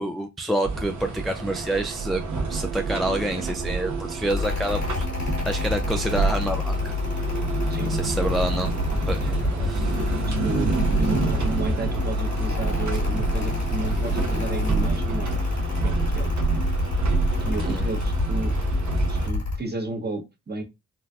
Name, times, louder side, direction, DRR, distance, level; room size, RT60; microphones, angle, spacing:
voice 1, 0.0-2.2 2.5-6.9 7.9-8.7 9.1-9.3 9.6-10.0 17.6-17.8, right 1 dB, ahead, 0.4 m, -28 dB
sound 1, 0.6-19.3, right 4 dB, 70° right, 0.9 m, -28 dB
Mechanical fan, 4.3-19.6, left 3 dB, 70° left, 2.0 m, -28 dB
voice 2, 9.2-9.7 10.3-15.4 15.8-16.3 17.4-18.8 19.1-20.6, right 2 dB, 35° right, 1.0 m, -33 dB
Water / Splash splatter, 13.0-15.0, left 1 dB, 35° left, 1.0 m, -44 dB
4.0 x 2.2 x 2.3 m
cardioid pair, 55°, 30 cm